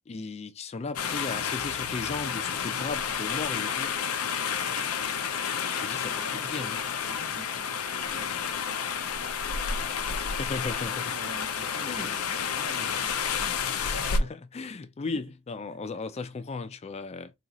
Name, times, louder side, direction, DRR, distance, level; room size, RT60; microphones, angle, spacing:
voice 1, 0.1-3.9 5.7-6.2 6.4-6.8 10.3-11.1 11.9-12.8 13.4-14.3 14.5-17.3, left 4 dB, 30° left, 0.3 m, -36 dB
sound 1, 1.0-14.2, left 7 dB, 85° left, 0.6 m, -30 dB
voice 2, 4.5-4.9 5.8-6.7 7.0-8.6 8.8-10.3 11.1-13.4 13.7-14.3 15.1-15.2 15.7-15.8, right 2 dB, 65° right, 1.1 m, -48 dB
3.9 x 2.4 x 2.9 m
head